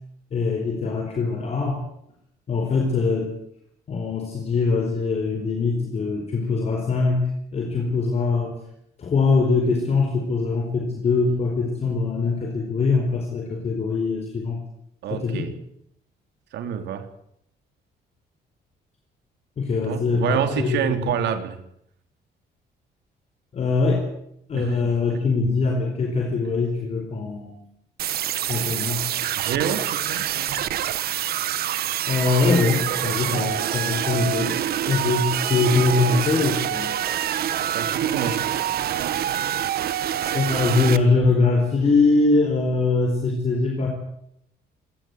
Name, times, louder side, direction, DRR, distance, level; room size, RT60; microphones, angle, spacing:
voice 1, 0.3-1.8 2.5-3.3 3.9-8.6 9.0-14.6 15.1-15.5 19.6-21.1 23.5-24.1 24.5-27.6 28.5-29.0 32.1-34.5 34.9-37.0 40.2-43.9, left 4 dB, 35° left, 2 dB, 4.5 m, -22 dB
voice 2, 15.0-15.5 16.5-17.1 19.9-21.6 24.5-25.2 29.4-30.6 37.7-38.5, right 8 dB, 80° right, 8 dB, 3.8 m, -28 dB
sound 1, 28.0-41.0, right 11 dB, 60° right, 1.3 m, -26 dB
26.5 x 18.5 x 8.1 m, 0.75 s
cardioid pair, 175°, 18 cm